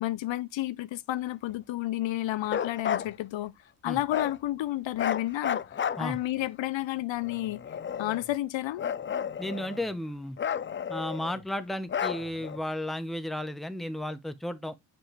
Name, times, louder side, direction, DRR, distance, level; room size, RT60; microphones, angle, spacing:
voice 1, 0.0-3.5 3.8-5.6 6.0-7.6 8.0-8.8, left 15 dB, 70° left, 0.6 m, -31 dB
Bark, 2.4-3.1 4.1-4.4 5.0-6.4 7.2-8.3 8.8-9.9 10.4-11.4 11.9-12.6, left 8 dB, 30° left, 0.3 m, -32 dB
voice 2, 9.4-10.4 10.9-14.7, left 1 dB, ahead, 0.8 m, -34 dB
7.0 x 5.3 x 3.0 m
cardioid pair, 85°, 47 cm